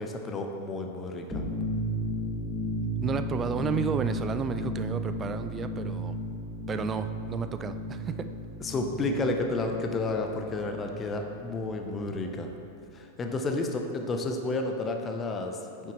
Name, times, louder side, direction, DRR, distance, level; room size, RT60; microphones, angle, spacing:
voice 1, 0.0-1.4 8.6-12.5 12.9-15.9, left 2 dB, 20° left, 4 dB, 0.7 m, -31 dB
sound 1, 1.3-12.7, equal, ahead, 1.6 m, -35 dB
voice 2, 3.0-6.1 6.7-8.3, right 6 dB, 25° right, 10 dB, 0.4 m, -32 dB
8.6 x 6.9 x 3.1 m, 2.7 s
figure-of-eight pair, 90°, 0 cm